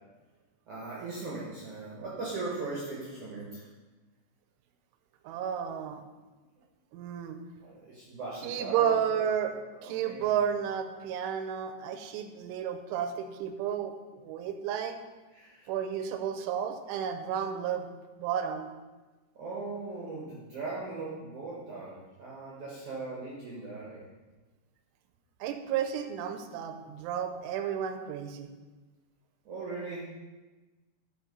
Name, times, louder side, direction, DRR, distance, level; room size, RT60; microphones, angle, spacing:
voice 1, 0.7-3.7 7.6-9.2 9.8-10.3 15.3-15.7 19.4-24.0 29.5-30.1, right 3 dB, 65° right, -4 dB, 1.9 m, -39 dB
voice 2, 5.2-6.0 6.9-7.4 8.4-9.5 9.8-15.0 15.7-17.9 18.2-18.7 25.4-28.5, right 8 dB, 85° right, 7 dB, 3.1 m, -32 dB
12.0 x 5.4 x 5.4 m, 1.2 s
omnidirectional pair, 5.8 m